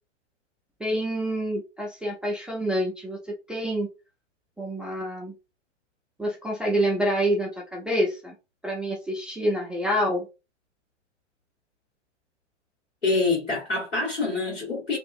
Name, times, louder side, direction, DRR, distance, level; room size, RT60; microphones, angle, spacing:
voice 1, 0.8-3.9 4.6-5.3 6.2-8.3 8.6-10.3, equal, 5° right, 0.4 m, -27 dB
voice 2, 13.0-15.0, left 3 dB, 85° left, 1.5 m, -26 dB
2.8 x 2.4 x 2.4 m
figure-of-eight pair, 95°, 35 cm